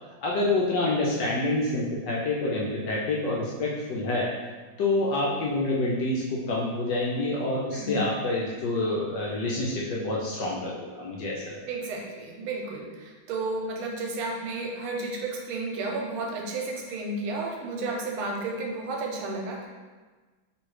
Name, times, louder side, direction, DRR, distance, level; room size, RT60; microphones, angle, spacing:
voice 1, 0.2-4.3 4.8-11.6, left 2 dB, 70° left, -4 dB, 1.1 m, -27 dB
voice 2, 11.7-19.7, right 3 dB, 85° right, 0 dB, 1.6 m, -32 dB
3.1 x 3.1 x 4.6 m, 1.3 s
omnidirectional pair, 2.2 m